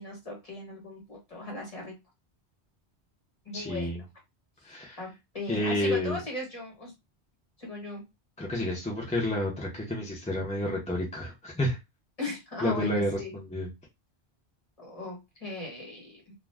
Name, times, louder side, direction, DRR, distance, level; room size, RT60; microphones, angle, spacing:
voice 1, 0.0-1.9 3.4-4.0 5.0-6.9 7.6-8.0 12.2-13.4 14.8-16.3, left 2 dB, 35° left, -1 dB, 1.2 m, -38 dB
voice 2, 3.5-4.0 4.6-5.0 5.5-6.2 8.4-11.8 12.6-13.7, left 1 dB, 10° left, -2 dB, 0.5 m, -30 dB
2.4 x 2.2 x 3.2 m, 0.22 s
omnidirectional pair, 1.1 m